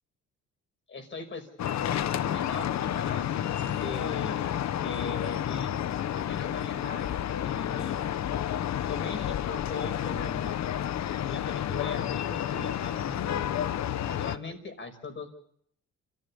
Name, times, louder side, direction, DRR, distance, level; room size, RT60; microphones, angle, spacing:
voice 1, 0.9-1.5 1.9-4.4 4.8-5.9 6.1-7.1 7.4-8.0 8.9-10.6 11.3-13.6 14.1-15.3, left 3 dB, 40° left, 7 dB, 5.5 m, -40 dB
sound 1, 1.6-14.4, left 10 dB, 65° left, 1.0 m, -30 dB
26.5 x 14.5 x 8.7 m, 0.67 s
cardioid pair, 90°, 30 cm